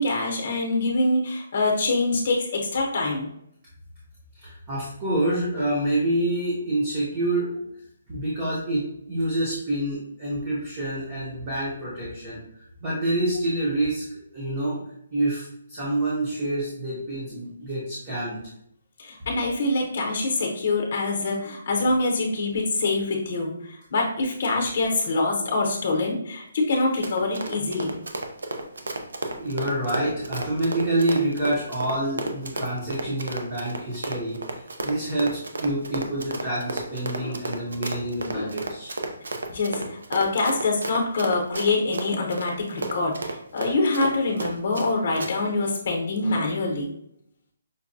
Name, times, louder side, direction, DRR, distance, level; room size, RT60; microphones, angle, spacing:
voice 1, 0.0-3.3 19.0-28.0 37.2-37.3 38.3-38.5 39.5-46.9, left 2 dB, 35° left, 1 dB, 0.8 m, -25 dB
voice 2, 4.4-7.6 8.1-12.4 12.8-14.0 14.3-14.8 15.1-18.4 29.4-39.0, right 1 dB, 15° right, -7 dB, 0.6 m, -27 dB
Run, 26.7-44.9 45.2-45.3, right 2 dB, 85° right, 0.5 m, -32 dB
5.2 x 2.2 x 2.6 m, 0.73 s
hypercardioid pair, 180°, 0 cm